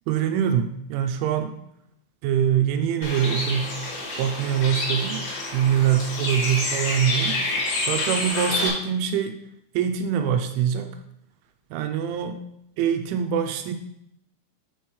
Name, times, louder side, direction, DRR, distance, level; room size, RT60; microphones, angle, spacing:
voice 1, 0.1-1.6 2.2-3.8 4.2-5.2 5.5-7.4 7.9-9.4 9.7-11.0 11.7-12.4 12.8-13.7, right 8 dB, 90° right, 6 dB, 3.1 m, -24 dB
Bird, 3.0-8.7, left 2 dB, 65° left, 4.6 m, -28 dB
8.9 x 7.8 x 3.2 m, 0.78 s
omnidirectional pair, 5.4 m